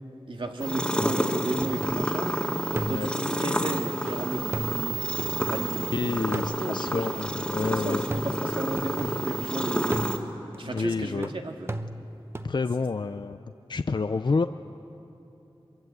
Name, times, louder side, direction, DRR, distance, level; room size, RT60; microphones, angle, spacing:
voice 1, 0.3-2.3 2.9-5.0 5.5-7.2 7.7-10.1 10.6-11.7, right 2 dB, 65° right, 3 dB, 1.9 m, -34 dB
sound 1, 0.6-10.2, equal, 10° left, 1.9 m, -29 dB
sound 2, 1.0-2.3 2.7-5.9 6.3-9.5 9.9-12.5, right 1 dB, 25° right, 0.8 m, -37 dB
voice 2, 2.7-3.1 5.9-8.0 10.6-11.3 12.4-14.5, left 4 dB, 55° left, 10 dB, 0.5 m, -29 dB
25.0 x 23.0 x 8.1 m, 2.9 s
wide cardioid pair, 80°, 9 cm